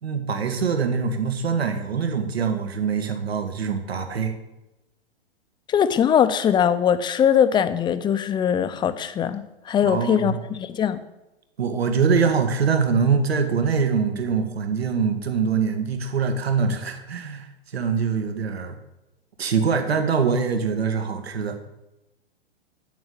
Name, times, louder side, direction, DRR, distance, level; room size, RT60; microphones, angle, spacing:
voice 1, 0.0-4.4 9.8-10.4 11.6-17.5 17.7-18.8 19.4-21.6, right 5 dB, 75° right, 6 dB, 2.1 m, -23 dB
voice 2, 5.7-11.0, left 8 dB, 15° left, 12 dB, 0.7 m, -21 dB
9.1 x 8.8 x 7.2 m, 0.99 s
hypercardioid pair, 115°, 31 cm